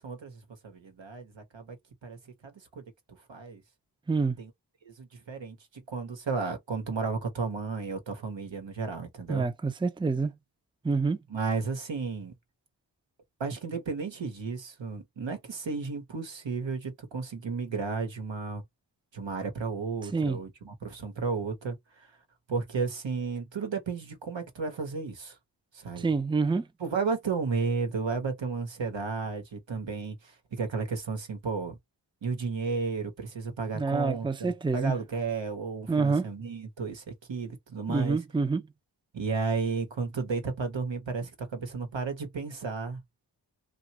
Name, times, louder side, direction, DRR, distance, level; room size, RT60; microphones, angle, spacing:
voice 1, 0.0-1.8 2.0-2.8 3.3-3.6 4.4-4.5 4.8-9.5 11.3-12.3 13.4-18.6 19.1-22.1 22.5-25.4 25.7-26.1 26.8-31.8 32.2-38.2 39.1-43.0, right 4 dB, 80° right, 1.2 m, -33 dB
voice 2, 9.3-10.3 10.8-11.2 20.1-20.4 26.0-26.7 33.7-34.9 35.9-36.3 37.9-38.6, right 4 dB, 10° right, 0.5 m, -27 dB
2.9 x 2.5 x 2.9 m
wide cardioid pair, 45°, 45 cm